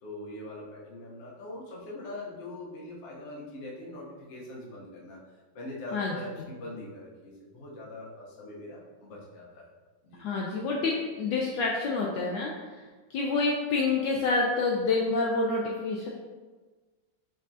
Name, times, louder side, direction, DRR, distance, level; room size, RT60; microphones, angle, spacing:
voice 1, 0.0-5.2 5.5-9.7 10.0-10.2, left 1 dB, 45° left, -4 dB, 1.0 m, -42 dB
voice 2, 10.2-10.9 11.2-12.5 13.1-16.1, left 3 dB, 75° left, -2 dB, 1.1 m, -27 dB
5.3 x 3.7 x 2.7 m, 1.3 s
omnidirectional pair, 2.2 m